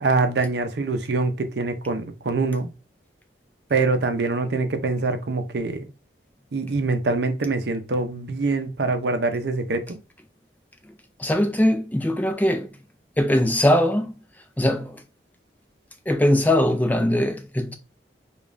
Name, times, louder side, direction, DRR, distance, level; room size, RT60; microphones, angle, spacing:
voice 1, 0.0-2.7 3.7-5.9 6.5-10.0, right 3 dB, 75° right, 0.6 m, -24 dB
voice 2, 11.2-12.7 13.2-14.1 14.6-15.0 16.1-17.8, left 1 dB, 10° left, 0.4 m, -21 dB
5.0 x 2.4 x 2.5 m
head